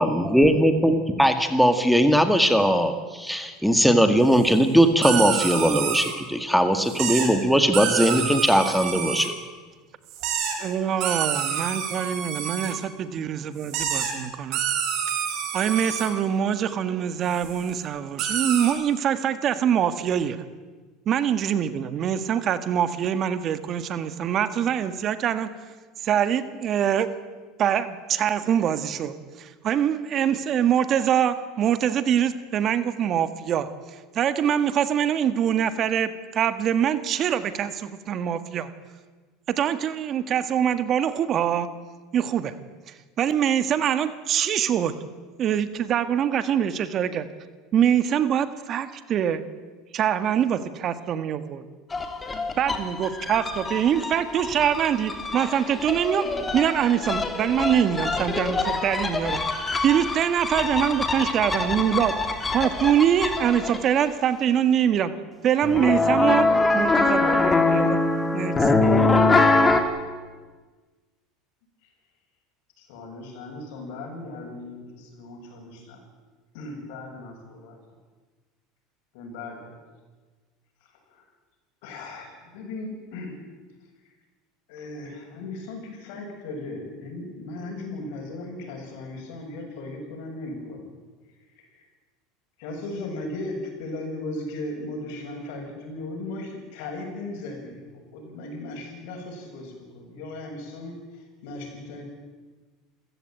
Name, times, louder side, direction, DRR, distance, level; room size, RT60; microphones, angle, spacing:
voice 1, 0.0-9.3, equal, ahead, 7 dB, 2.0 m, -20 dB
sound 1, 4.3-4.5 5.0-6.1 6.8-7.3 7.7-9.3 10.1-10.5 11.0-12.7 13.6-14.1 14.5-16.1 17.2-17.7 18.2-18.7, right 8 dB, 60° right, 6.3 m, -28 dB
voice 2, 10.6-14.6 15.5-20.4 21.1-25.5 26.0-27.1 27.6-33.7 34.1-38.7 39.5-41.7 42.1-42.6 42.9-44.9 45.4-47.3 47.7-49.4 49.9-51.6 52.6-59.4 59.8-62.1 62.5-65.1 65.4-68.0 68.3-68.7, right 9 dB, 45° right, 12 dB, 1.7 m, -24 dB
sound 2, 51.9-64.0 65.6-69.8, left 3 dB, 20° left, 3.0 m, -24 dB
voice 3, 72.8-76.0 76.5-77.8 79.1-79.7 81.8-83.4 84.7-90.9 91.7-91.8 92.6-97.8 98.1-101.0 101.4-102.0, left 2 dB, 75° left, 3 dB, 7.5 m, -37 dB
28.0 x 15.5 x 9.1 m, 1.4 s
supercardioid pair, 110°, 0 cm